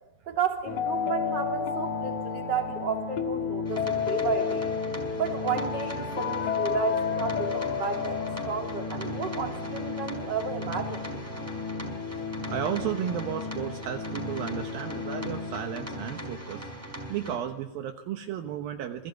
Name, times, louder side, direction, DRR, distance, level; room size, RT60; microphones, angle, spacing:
voice 1, 0.3-4.7 5.2-11.1, right 6 dB, 30° right, 3 dB, 3.2 m, -32 dB
sound 1, 0.7-16.4, left 6 dB, 55° left, 2.8 m, -32 dB
sound 2, 2.3-8.9, left 3 dB, 75° left, 7.9 m, -48 dB
sound 3, 3.6-17.4, right 1 dB, 5° right, 4.4 m, -40 dB
voice 2, 12.5-16.7 17.1-19.1, right 9 dB, 70° right, 6 dB, 2.8 m, -33 dB
28.5 x 20.5 x 9.4 m, 0.92 s
omnidirectional pair, 4.5 m